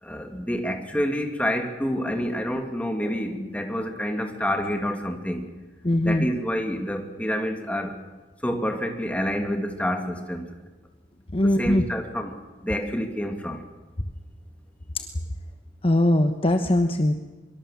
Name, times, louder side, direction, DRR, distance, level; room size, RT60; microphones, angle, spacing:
voice 1, 0.0-5.5 6.0-8.0 8.4-10.5 11.4-12.4 12.6-13.6, equal, 10° left, 4 dB, 2.5 m, -28 dB
voice 2, 5.8-6.3 11.3-11.8 14.9-15.0 15.8-17.2, left 1 dB, 30° left, 7 dB, 1.1 m, -21 dB
24.0 x 23.0 x 7.4 m, 1.2 s
head